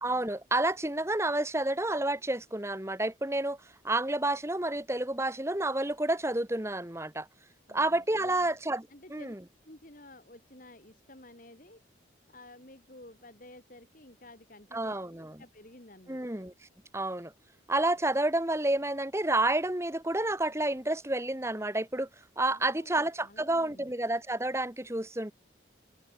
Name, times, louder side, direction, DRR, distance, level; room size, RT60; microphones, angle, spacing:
voice 1, 0.0-3.6 3.8-7.3 7.7-8.8 9.1-9.4 14.7-15.4 16.1-16.5 16.9-17.3 17.7-22.1 22.4-25.3, right 2 dB, 15° right, 1.5 m, -30 dB
voice 2, 7.7-8.4 8.9-9.3 9.6-11.8 12.3-16.2 22.5-23.9, left 2 dB, 45° left, 3.8 m, -52 dB
open air
head